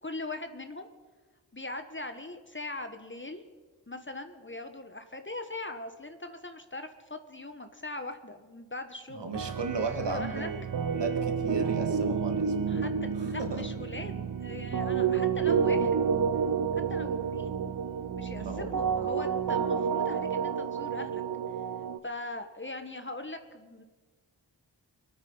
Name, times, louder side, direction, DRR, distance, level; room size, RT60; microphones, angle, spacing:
voice 1, 0.0-0.9 1.5-3.4 3.9-9.3 10.0-10.5 12.7-16.0 16.9-17.6 18.1-21.2 22.0-23.8, left 2 dB, 25° left, 8 dB, 1.2 m, -40 dB
voice 2, 9.1-10.6 10.9-12.9 13.2-13.7 18.4-18.7, right 4 dB, 65° right, 5 dB, 2.0 m, -35 dB
sound 1, 9.3-22.0, right 6 dB, 50° right, 0.7 m, -30 dB
23.5 x 9.1 x 5.5 m, 1.4 s
wide cardioid pair, 55°, 45 cm